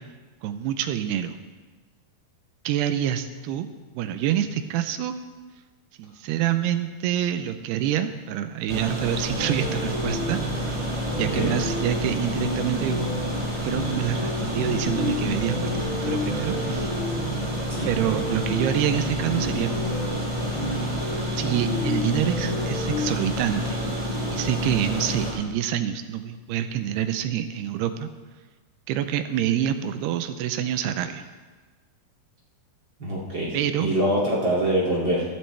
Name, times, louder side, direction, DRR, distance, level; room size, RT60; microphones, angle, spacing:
voice 1, 0.4-1.4 2.7-3.7 4.0-5.1 6.0-10.7 11.2-13.2 13.6-16.9 17.9-19.8 21.4-23.8 24.3-28.1 28.9-31.2 33.5-33.9, right 10 dB, 90° right, 9 dB, 2.8 m, -27 dB
sound 1, 8.7-25.3, equal, 10° right, 2.7 m, -29 dB
sound 2, 9.4-23.1, left 1 dB, 25° left, 3.5 m, -32 dB
voice 2, 11.1-11.5 17.7-17.9 33.0-35.2, right 1 dB, 35° right, -6 dB, 2.8 m, -25 dB
15.5 x 12.5 x 3.4 m, 1.3 s
omnidirectional pair, 4.6 m